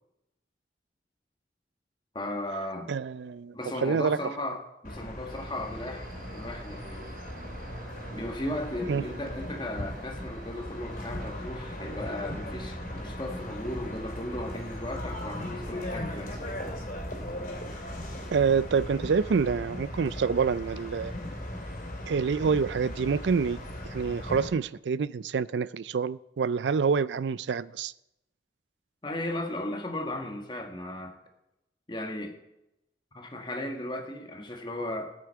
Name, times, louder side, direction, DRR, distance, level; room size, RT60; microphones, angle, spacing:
voice 1, 2.2-2.9 3.5-7.1 8.1-16.5 29.0-31.2 31.9-32.4 33.1-35.1, left 1 dB, 25° left, 1.6 m, -36 dB
voice 2, 2.9-3.5 3.8-4.2 8.9-9.0 18.3-21.1 22.1-23.6 23.9-27.9, right 5 dB, 85° right, 0.4 m, -27 dB
sound 1, 4.8-24.5, left 1 dB, 50° left, 3.4 m, -38 dB
sound 2, 5.3-16.5, right 3 dB, 50° right, 0.8 m, -50 dB
19.0 x 8.2 x 4.7 m
head